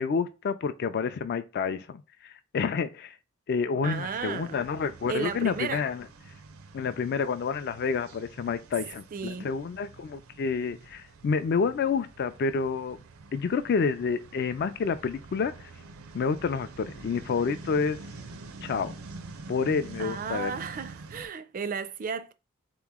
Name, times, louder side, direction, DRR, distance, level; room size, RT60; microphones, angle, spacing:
voice 1, 0.0-3.2 3.5-6.1 6.7-13.0 13.3-15.5 16.1-18.0 18.6-18.9 19.5-20.5, left 5 dB, 50° left, 0.3 m, -29 dB
voice 2, 3.8-4.7 5.1-5.9 9.1-9.5 20.0-22.3, right 6 dB, 40° right, 0.4 m, -34 dB
sound 1, 3.9-21.3, right 3 dB, 90° right, 0.6 m, -47 dB
3.9 x 3.0 x 3.6 m
head